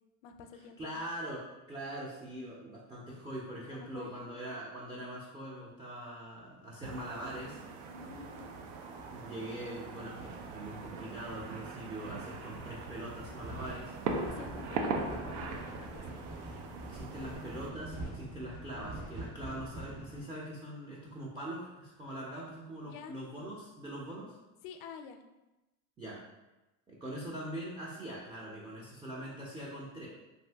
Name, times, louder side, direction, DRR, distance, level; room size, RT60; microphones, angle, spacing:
voice 1, 0.2-0.9 3.7-4.6 7.9-8.6 14.2-16.2 22.8-23.2 24.6-25.2, left 6 dB, 75° left, 6 dB, 0.5 m, -49 dB
voice 2, 0.8-7.6 9.1-13.9 16.8-24.4 26.0-26.2 26.9-30.1, right 1 dB, 10° right, -5 dB, 0.4 m, -42 dB
sound 1, 6.8-17.7, right 4 dB, 80° right, 0.6 m, -41 dB
sound 2, 13.2-20.2, right 1 dB, 50° right, 1.4 m, -45 dB
2.6 x 2.6 x 3.3 m, 1.0 s
supercardioid pair, 115°, 42 cm